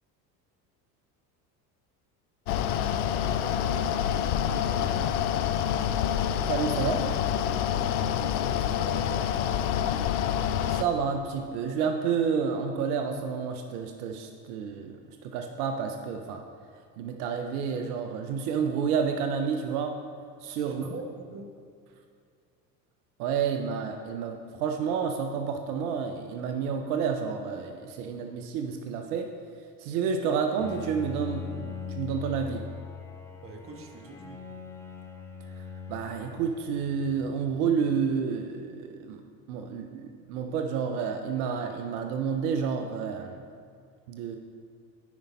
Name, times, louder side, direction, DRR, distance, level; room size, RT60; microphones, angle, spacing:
Mechanical fan, 2.5-10.8, left 9 dB, 65° left, 0.5 m, -27 dB
voice 1, 4.7-5.1 7.9-9.3 20.5-21.5 33.4-34.4, right 3 dB, 25° right, 4 dB, 1.0 m, -43 dB
voice 2, 6.5-7.1 10.2-16.4 17.0-20.0 20.4-20.9 23.2-29.3 29.8-32.6 35.6-39.2 39.5-43.4 44.1-44.4, right 6 dB, 60° right, 5 dB, 0.7 m, -30 dB
Bowed string instrument, 30.6-37.7, left 5 dB, 5° left, 0.3 m, -41 dB
9.4 x 5.3 x 4.1 m, 2.3 s
hypercardioid pair, 75°, 49 cm